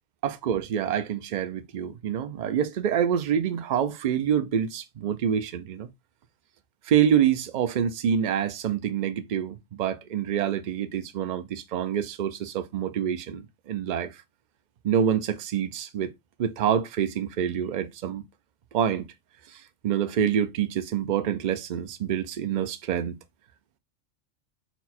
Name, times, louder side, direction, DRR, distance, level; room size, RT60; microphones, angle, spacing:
voice 1, 0.2-5.9 6.9-14.1 14.8-16.1 16.4-18.2 18.7-19.1 19.8-23.2, right 9 dB, 60° right, 0.5 m, -26 dB
4.2 x 2.2 x 4.2 m
omnidirectional pair, 1.3 m